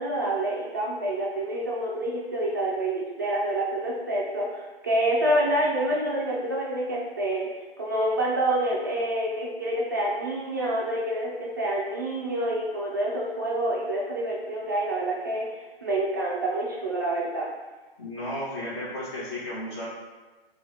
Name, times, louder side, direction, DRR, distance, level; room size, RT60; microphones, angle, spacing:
voice 1, 0.0-7.5 7.8-17.5, right 1 dB, 20° right, -4 dB, 0.3 m, -27 dB
voice 2, 18.0-19.9, left 1 dB, 30° left, -8 dB, 0.9 m, -33 dB
3.2 x 2.3 x 3.2 m, 1.2 s
figure-of-eight pair, 130°, 30 cm